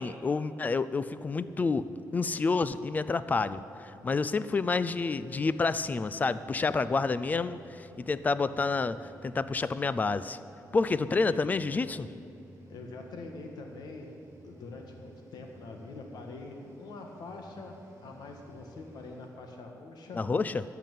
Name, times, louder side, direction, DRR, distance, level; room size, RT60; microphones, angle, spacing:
voice 1, 0.0-10.4 10.7-12.1 20.1-20.6, left 4 dB, 25° left, 15 dB, 0.4 m, -29 dB
sound 1, 0.9-19.3, right 1 dB, 40° right, 2.9 m, -55 dB
voice 2, 12.7-14.1 14.4-17.7 18.0-20.2, left 3 dB, 85° left, 3 dB, 1.6 m, -44 dB
14.0 x 5.9 x 9.1 m, 2.7 s
wide cardioid pair, 150°, 7 cm